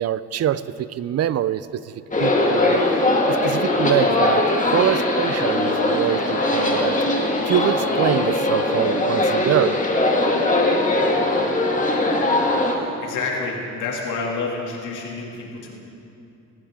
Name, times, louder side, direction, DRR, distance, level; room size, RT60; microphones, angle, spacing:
voice 1, 0.0-4.5 4.7-9.8, right 11 dB, 55° right, 16 dB, 0.5 m, -25 dB
sound 1, 2.1-12.7, left 2 dB, 25° left, 1.9 m, -20 dB
voice 2, 12.6-15.8, left 4 dB, 85° left, -2 dB, 2.7 m, -29 dB
18.5 x 15.5 x 3.7 m, 2.7 s
cardioid pair, 90°, 30 cm